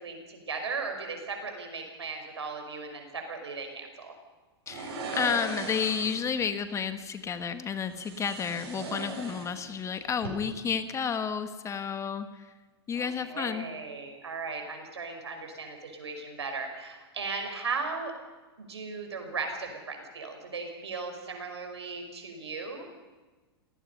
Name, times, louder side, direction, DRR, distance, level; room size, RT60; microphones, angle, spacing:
voice 1, 0.0-4.1 12.9-18.2 18.6-22.9, right 4 dB, 85° right, 4 dB, 5.2 m, -37 dB
voice 2, 4.7-12.3 12.9-13.6, left 6 dB, 20° left, 9 dB, 1.5 m, -31 dB
sound 1, 4.7-6.3 7.9-9.8 10.1-10.3, right 4 dB, 65° right, 7.1 m, -38 dB
28.0 x 18.0 x 5.5 m, 1.3 s
hypercardioid pair, 105°, 14 cm